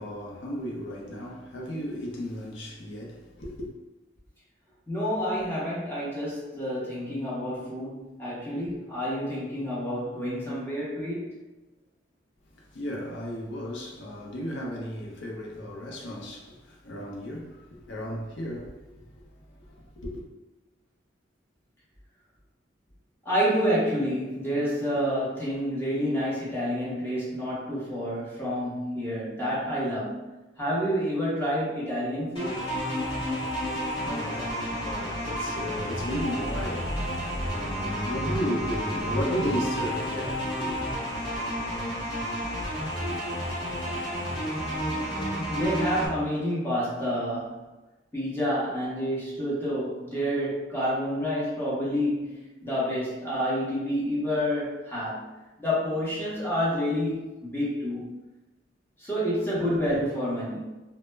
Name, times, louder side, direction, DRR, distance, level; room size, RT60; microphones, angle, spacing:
voice 1, 0.0-3.7 12.6-19.2 19.6-20.2 33.8-40.9, equal, 70° left, 0.6 m, -35 dB
voice 2, 4.9-11.3 23.2-30.2 30.6-32.7 44.9-47.6 48.1-55.3 55.6-58.0 59.0-60.6, equal, 10° left, 0.7 m, -29 dB
sound 1, 32.4-46.1, equal, 30° left, 1.0 m, -31 dB
2.1 x 2.0 x 3.2 m
head